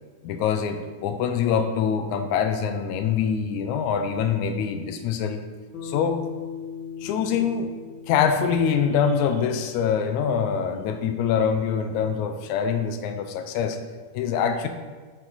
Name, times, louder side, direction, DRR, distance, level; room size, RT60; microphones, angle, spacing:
voice 1, 0.2-5.4 5.8-6.2 7.0-7.7 8.1-13.8 14.1-14.7, left 7 dB, 80° left, 7 dB, 1.9 m, -24 dB
Bass guitar, 5.7-10.2, left 6 dB, 60° left, 1.2 m, -39 dB
6.5 x 6.0 x 4.0 m, 1.4 s
omnidirectional pair, 3.5 m